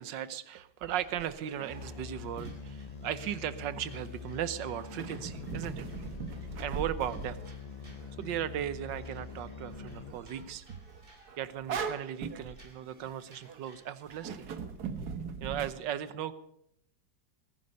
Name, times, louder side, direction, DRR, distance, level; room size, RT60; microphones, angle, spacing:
voice 1, 0.0-5.9 6.6-7.4 8.2-10.6 11.4-14.5 15.4-16.3, right 10 dB, 80° right, 15 dB, 1.6 m, -37 dB
sound 1, 0.8-3.4 4.8-13.6 14.1-15.7, right 6 dB, 60° right, 1.6 m, -41 dB
sound 2, 0.9-14.4, right 2 dB, 30° right, 2.7 m, -61 dB
sound 3, 1.7-10.1, left 6 dB, 65° left, 0.3 m, -44 dB
20.0 x 9.7 x 6.5 m, 0.74 s
omnidirectional pair, 2.0 m